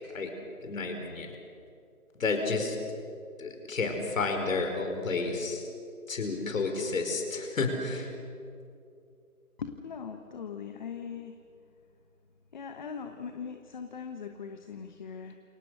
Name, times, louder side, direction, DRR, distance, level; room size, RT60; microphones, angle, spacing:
voice 1, 0.6-1.3 2.2-2.8 3.4-5.6 6.1-8.1, left 3 dB, 60° left, 4 dB, 5.3 m, -31 dB
voice 2, 9.6-11.4 12.5-15.4, left 6 dB, 30° left, 6 dB, 1.2 m, -40 dB
28.5 x 28.0 x 6.5 m, 2.5 s
hypercardioid pair, 160°, 44 cm